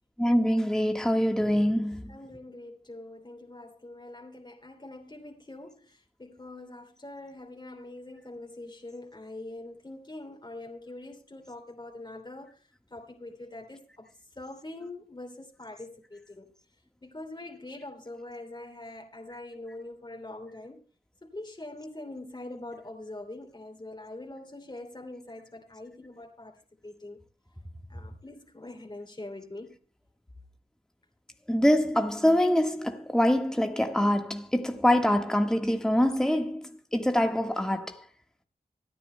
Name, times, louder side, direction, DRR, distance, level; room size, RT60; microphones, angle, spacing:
voice 1, 0.2-2.1 31.5-37.9, equal, 5° left, 1.5 m, -24 dB
voice 2, 2.1-14.1 14.4-16.5 17.0-20.8 21.2-26.6 26.8-27.2 27.9-29.8, left 2 dB, 30° left, 2.8 m, -43 dB
25.5 x 9.7 x 2.2 m
cardioid pair, 40°, 16 cm